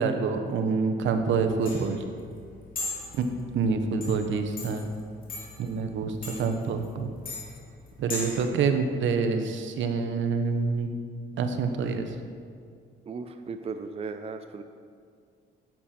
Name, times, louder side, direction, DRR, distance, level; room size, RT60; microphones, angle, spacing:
voice 1, 0.0-2.0 3.2-3.3 3.5-4.9 5.6-7.1 8.0-10.9 11.4-12.1, right 5 dB, 75° right, 7 dB, 0.9 m, -27 dB
sound 1, 1.1-8.5, left 3 dB, 45° left, 2.4 m, -39 dB
voice 2, 13.1-14.6, right 4 dB, 30° right, 7 dB, 0.5 m, -36 dB
10.0 x 7.6 x 4.3 m, 2.2 s
cardioid pair, 90°, 20 cm